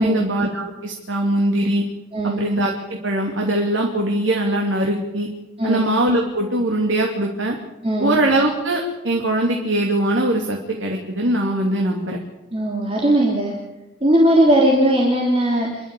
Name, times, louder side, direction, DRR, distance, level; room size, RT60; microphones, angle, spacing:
voice 1, 0.0-1.8 2.2-5.3 5.6-7.6 8.0-12.2, right 1 dB, 70° right, 0 dB, 2.9 m, -21 dB
voice 2, 2.1-2.4 5.6-5.9 7.8-8.1 12.5-13.6 14.0-15.9, right 1 dB, 30° right, -2 dB, 3.3 m, -18 dB
28.5 x 12.5 x 8.6 m, 1.0 s
head